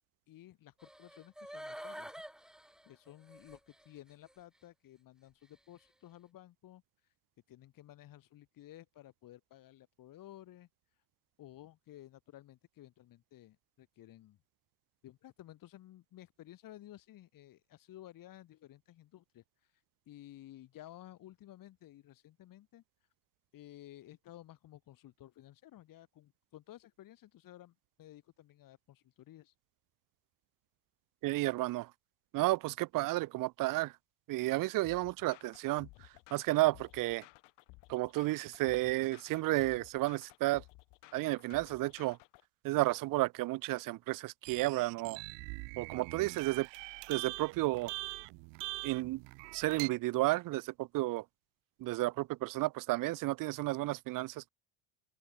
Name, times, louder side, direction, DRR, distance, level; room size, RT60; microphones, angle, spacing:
voice 1, 0.3-2.1 2.8-6.8 7.5-10.7 11.4-14.4 15.0-22.8 23.5-29.5, left 14 dB, 50° left, 6.0 m, -55 dB
sound 1, 0.8-3.9 4.3-4.4, equal, ahead, 1.8 m, -48 dB
voice 2, 31.2-31.9 32.3-33.9 34.3-35.9 36.3-37.2 37.9-40.6 41.1-42.2 42.6-45.2 45.8-46.7 47.1-47.9 48.8-49.2 49.5-51.2 51.8-54.4, right 19 dB, 50° right, 0.7 m, -32 dB
sound 2, 34.8-42.4, left 24 dB, 75° left, 5.3 m, -57 dB
sound 3, 44.4-49.9, right 29 dB, 80° right, 1.0 m, -43 dB
open air
cardioid pair, 150°, 42 cm